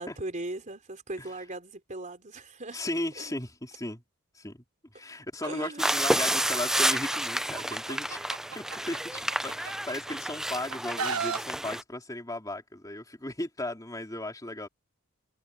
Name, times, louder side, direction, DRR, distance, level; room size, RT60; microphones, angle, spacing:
voice 1, 0.0-2.8 3.2-3.4 5.4-5.9, right 2 dB, 35° right, 3.8 m, -39 dB
voice 2, 2.7-4.0 4.3-4.6 4.9-14.7, left 1 dB, 15° left, 3.6 m, -36 dB
Chicken rooster, 5.4-7.2 7.6-10.2 10.5-11.4, right 6 dB, 85° right, 1.1 m, -35 dB
sound 1, 5.8-11.8, right 1 dB, ahead, 0.4 m, -30 dB
head